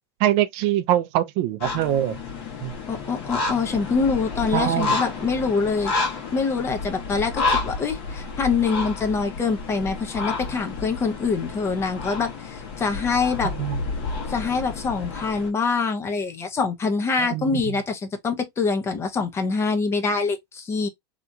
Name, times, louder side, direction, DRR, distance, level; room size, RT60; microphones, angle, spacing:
voice 1, 0.2-2.2 2.6-2.7 4.5-5.0 13.6-13.8 17.2-17.6, right 12 dB, 45° right, 0.4 m, -23 dB
sound 1, 1.6-15.5, left 4 dB, 45° left, 1.2 m, -30 dB
voice 2, 2.9-5.9 6.3-13.5 14.3-20.9, left 4 dB, 20° left, 0.6 m, -25 dB
2.8 x 2.3 x 2.6 m
supercardioid pair, 130°, 14 cm